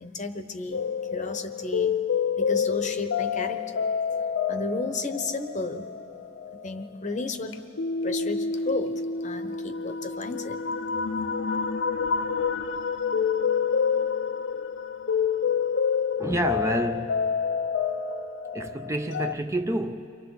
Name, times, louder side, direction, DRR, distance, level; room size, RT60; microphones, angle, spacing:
voice 1, 0.0-1.9 2.4-3.9 4.5-5.9 6.5-7.6 8.0-10.6, left 3 dB, 40° left, 0.9 m, -33 dB
sound 1, 0.7-19.3, left 6 dB, 65° left, 0.6 m, -28 dB
voice 2, 16.2-17.3 18.5-20.1, right 1 dB, 15° right, 0.4 m, -28 dB
29.0 x 24.0 x 4.0 m
head